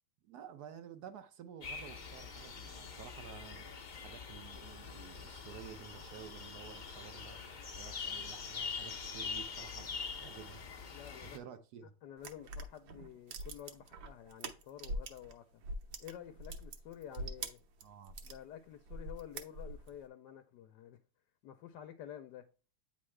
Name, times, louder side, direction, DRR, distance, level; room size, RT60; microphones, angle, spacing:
voice 1, 0.2-3.7 4.0-7.4 7.7-10.6 11.2-11.9 17.8-18.2, right 8 dB, 65° right, 1.1 m, -52 dB
sound 1, 1.6-11.4, left 5 dB, 90° left, 0.4 m, -44 dB
voice 2, 10.9-11.4 12.0-15.5 16.0-17.6 18.2-21.0 21.4-22.4, left 10 dB, 75° left, 1.2 m, -50 dB
sound 2, 12.2-15.3 15.6-18.4 18.9-20.0, right 2 dB, 90° right, 1.6 m, -43 dB
8.6 x 3.7 x 3.2 m
omnidirectional pair, 2.0 m